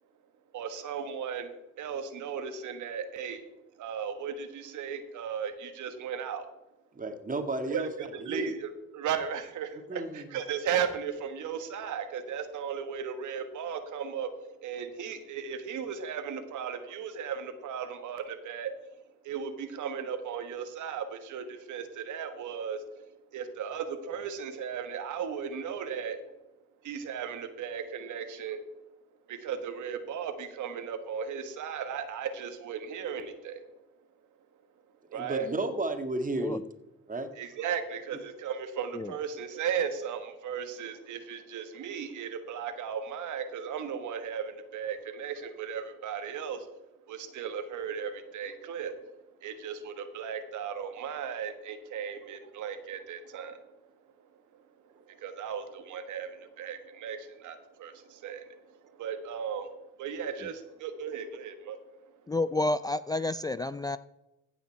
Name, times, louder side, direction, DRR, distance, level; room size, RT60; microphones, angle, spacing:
voice 1, 0.5-6.5 7.7-19.0 19.2-26.3 26.8-28.7 29.3-33.7 35.1-35.5 37.4-46.8 47.0-53.8 54.1-62.2, right 7 dB, 75° right, 8 dB, 1.4 m, -36 dB
voice 2, 6.9-7.9 8.3-8.5 9.9-10.2 35.1-36.6 37.1-37.3, right 2 dB, 25° right, 7 dB, 1.7 m, -32 dB
voice 3, 62.3-64.0, left 2 dB, 15° left, 13 dB, 0.4 m, -30 dB
15.5 x 5.7 x 4.5 m, 0.92 s
supercardioid pair, 65°, 30 cm